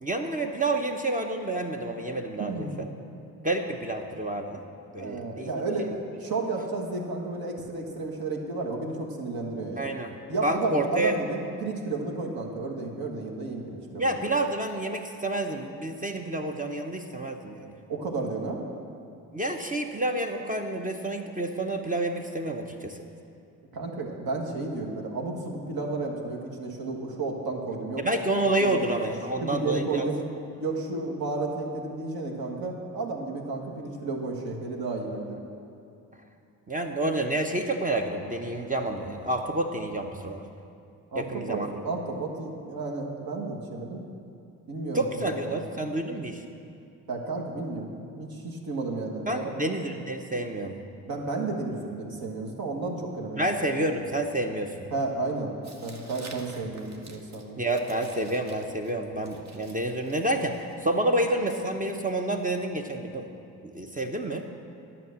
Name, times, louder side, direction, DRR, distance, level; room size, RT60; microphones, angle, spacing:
voice 1, 0.0-2.9 3.4-4.6 4.9-5.5 9.8-10.1 10.4-11.2 14.0-17.7 19.3-23.0 28.0-30.1 36.7-40.4 41.1-41.8 44.9-46.4 49.3-50.8 53.3-54.9 57.6-63.2 63.6-64.5, right 1 dB, 20° right, 3 dB, 0.8 m, -29 dB
voice 2, 2.4-2.8 5.0-5.9 6.2-9.9 10.3-14.1 17.9-18.6 23.7-28.0 28.6-29.0 29.4-30.2 30.6-35.4 41.1-44.0 44.7-45.0 45.4-45.6 47.1-49.5 51.0-53.4 53.7-53.8 54.9-55.5 55.8-57.6, right 3 dB, 55° right, 0 dB, 1.6 m, -32 dB
Tearing, 55.6-62.3, right 3 dB, 35° right, 1.3 m, -52 dB
11.0 x 5.9 x 6.5 m, 2.5 s
hypercardioid pair, 45°, 44 cm